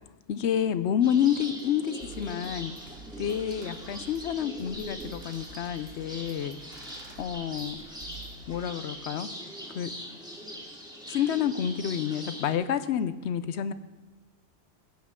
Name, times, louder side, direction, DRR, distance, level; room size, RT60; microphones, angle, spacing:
voice 1, 0.3-2.7 3.2-6.6 7.2-7.8 8.5-9.3 9.7-9.9 11.1-13.7, left 9 dB, 75° left, 13 dB, 0.8 m, -29 dB
sound 1, 1.0-12.5, equal, 5° right, 2.1 m, -42 dB
sound 2, 1.6-1.7 2.0-8.4, right 4 dB, 60° right, 1.3 m, -49 dB
16.0 x 9.5 x 3.7 m, 1.2 s
omnidirectional pair, 1.2 m